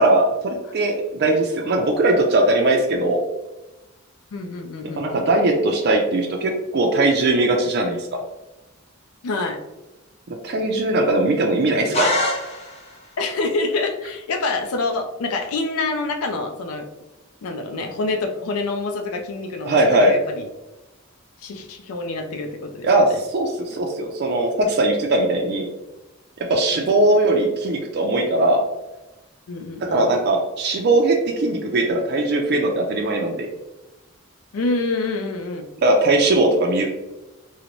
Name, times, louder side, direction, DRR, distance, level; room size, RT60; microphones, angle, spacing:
voice 1, 0.0-3.2 5.0-8.0 10.3-12.2 19.6-20.1 22.8-25.7 26.4-28.6 29.8-33.5 35.8-36.9, right 2 dB, 50° right, 1 dB, 0.4 m, -19 dB
voice 2, 4.3-5.2 9.2-9.6 13.2-16.9 17.4-20.5 21.4-23.2 23.8-23.9 26.7-26.9 29.5-30.1 34.5-35.6, left 3 dB, 85° left, 6 dB, 0.4 m, -27 dB
sound 1, 11.9-13.0, left 1 dB, 30° left, 0.6 m, -24 dB
3.8 x 2.1 x 2.9 m, 1.0 s
head